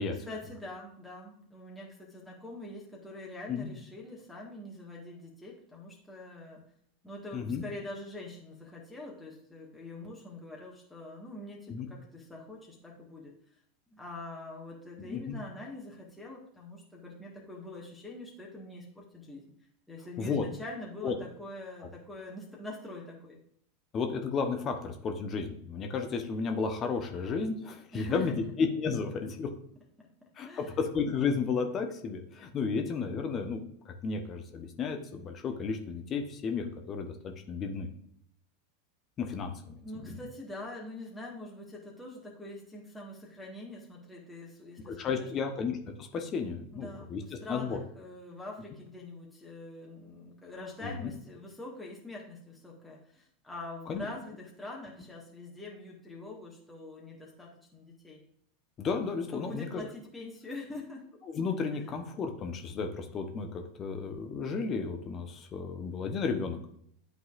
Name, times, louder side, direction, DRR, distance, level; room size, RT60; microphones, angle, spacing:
voice 1, 0.2-6.6 7.0-13.3 13.9-19.4 19.9-23.4 27.9-28.5 30.0-30.8 39.8-45.3 46.7-58.2 59.3-61.1 61.7-61.8, left 2 dB, 5° left, -4 dB, 1.6 m, -44 dB
voice 2, 7.3-7.6 11.7-11.9 15.0-15.4 20.2-20.4 21.0-21.1 23.9-29.5 30.4-37.1 37.5-37.9 39.2-40.2 44.9-47.2 47.5-47.8 50.8-50.9 53.9-54.1 58.8-59.8 61.3-66.6, left 5 dB, 35° left, 4 dB, 0.9 m, -33 dB
11.0 x 4.0 x 2.5 m, 0.70 s
figure-of-eight pair, 85°, 0 cm